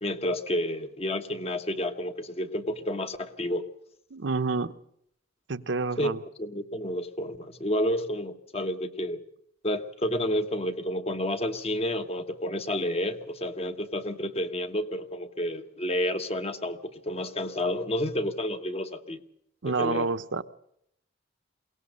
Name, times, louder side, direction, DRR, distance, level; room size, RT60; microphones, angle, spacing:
voice 1, 0.0-3.7 6.0-9.2 9.6-19.2 19.6-20.1, left 1 dB, 35° left, 8 dB, 1.2 m, -30 dB
voice 2, 4.1-4.8 5.5-6.2 19.6-20.4, right 4 dB, 70° right, 11 dB, 0.9 m, -28 dB
22.5 x 18.0 x 6.5 m, 0.73 s
head